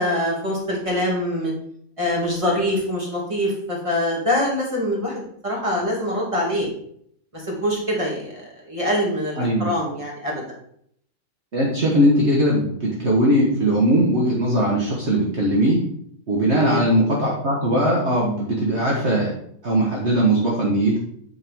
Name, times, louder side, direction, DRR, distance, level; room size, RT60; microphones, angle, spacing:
voice 1, 0.0-1.5 2.0-6.7 7.3-10.4 16.5-16.9, left 1 dB, 20° right, -3 dB, 2.7 m, -24 dB
voice 2, 9.4-9.7 11.5-15.8 16.3-19.4 19.6-21.0, right 1 dB, 50° right, -4 dB, 1.8 m, -19 dB
8.9 x 6.6 x 3.6 m, 0.66 s
omnidirectional pair, 1.5 m